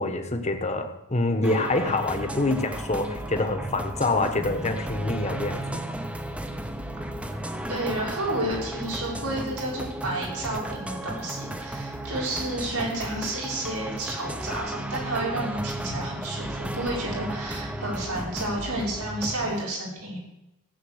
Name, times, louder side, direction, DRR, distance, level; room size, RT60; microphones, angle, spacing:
voice 1, 0.0-5.8, left 2 dB, 30° left, 6 dB, 1.2 m, -26 dB
sound 1, 1.4-19.6, right 1 dB, 5° right, 0.8 m, -34 dB
voice 2, 7.7-20.2, right 1 dB, 90° right, -2 dB, 5.8 m, -31 dB
15.0 x 7.6 x 7.9 m, 0.91 s
head